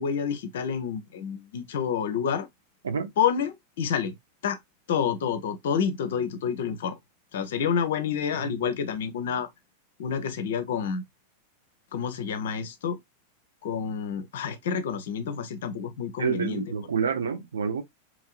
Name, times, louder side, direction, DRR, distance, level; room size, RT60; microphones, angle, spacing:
voice 1, 0.0-2.5 3.2-4.1 4.4-4.6 4.9-7.0 7.3-9.5 10.0-11.0 11.9-13.0 13.6-16.6, left 7 dB, 60° left, 0.5 m, -28 dB
voice 2, 8.4-8.7 16.2-17.8, right 6 dB, 70° right, 0.5 m, -29 dB
3.0 x 2.6 x 2.3 m
figure-of-eight pair, 90°, 0 cm